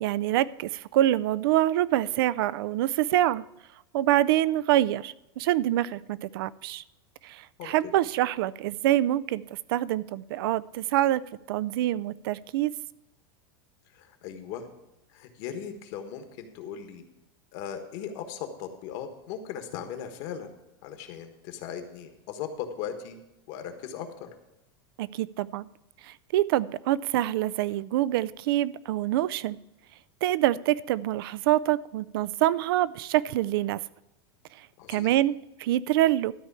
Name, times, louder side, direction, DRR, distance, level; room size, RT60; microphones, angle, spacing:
voice 1, 0.0-3.4 3.9-6.8 7.2-9.4 9.7-11.2 11.5-12.7 25.0-25.7 26.0-29.6 30.2-33.8 34.9-36.3, right 14 dB, 65° right, 19 dB, 0.4 m, -25 dB
voice 2, 7.6-7.9 13.9-14.7 15.1-17.0 17.5-20.5 20.8-23.2 23.5-24.3 34.8-35.1, left 8 dB, 50° left, 6 dB, 1.4 m, -38 dB
13.0 x 4.4 x 8.3 m, 0.93 s
supercardioid pair, 150°, 13 cm